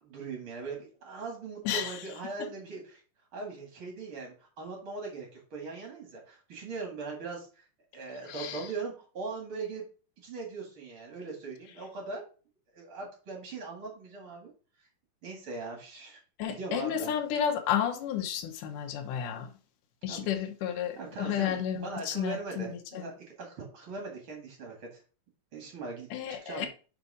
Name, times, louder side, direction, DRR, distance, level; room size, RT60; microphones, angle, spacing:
voice 1, 0.0-3.0 3.3-7.6 7.9-9.8 10.2-12.2 12.7-14.5 15.2-16.2 16.4-17.1 20.1-20.3 21.0-25.0 25.5-26.1 26.4-26.7, right 4 dB, 45° right, 2.5 m, -40 dB
voice 2, 1.7-2.1 2.4-2.5 8.3-8.7 16.4-19.5 20.0-23.0 26.1-26.7, left 9 dB, 90° left, 2.4 m, -32 dB
5.4 x 5.2 x 4.8 m
omnidirectional pair, 3.6 m